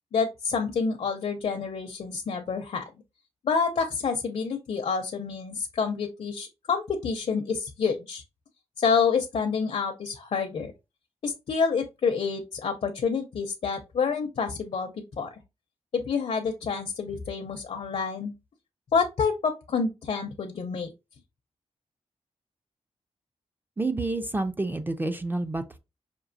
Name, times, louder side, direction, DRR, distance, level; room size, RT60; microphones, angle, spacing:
voice 1, 0.1-2.8 3.4-8.2 8.8-10.7 11.2-15.4 15.9-18.3 18.9-20.9, left 5 dB, 60° left, 0.5 m, -28 dB
voice 2, 23.8-25.8, right 2 dB, 15° right, 0.3 m, -29 dB
5.1 x 2.7 x 2.6 m
wide cardioid pair, 175°, 11 cm